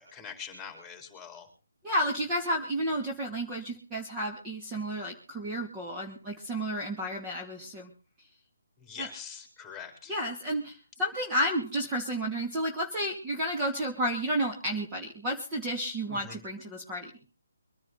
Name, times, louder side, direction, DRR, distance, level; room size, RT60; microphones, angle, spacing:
voice 1, 0.0-1.5 8.8-10.1 16.1-16.4, left 7 dB, 5° left, 5 dB, 4.3 m, -44 dB
voice 2, 1.8-7.9 9.0-9.1 10.1-17.1, equal, 15° right, 0 dB, 2.5 m, -31 dB
24.5 x 10.5 x 4.0 m, 0.35 s
hypercardioid pair, 160°, 0 cm